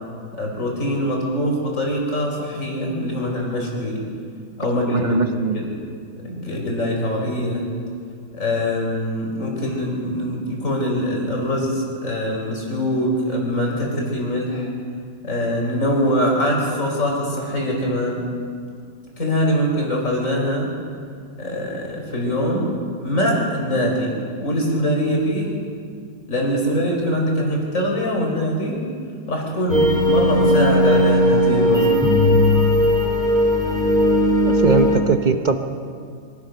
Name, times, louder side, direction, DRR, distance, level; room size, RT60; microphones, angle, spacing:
voice 1, 0.3-4.0 4.6-5.7 6.2-7.6 8.3-14.7 15.2-18.2 19.2-20.7 21.4-22.7 23.0-25.5 26.3-28.8 29.3-32.0, equal, 40° left, -1 dB, 5.1 m, -23 dB
voice 2, 4.9-5.6 34.4-35.6, right 4 dB, 75° right, 6 dB, 0.4 m, -20 dB
sound 1, 29.7-35.0, left 1 dB, ahead, 3.3 m, -17 dB
25.5 x 16.0 x 6.6 m, 2.2 s
omnidirectional pair, 2.2 m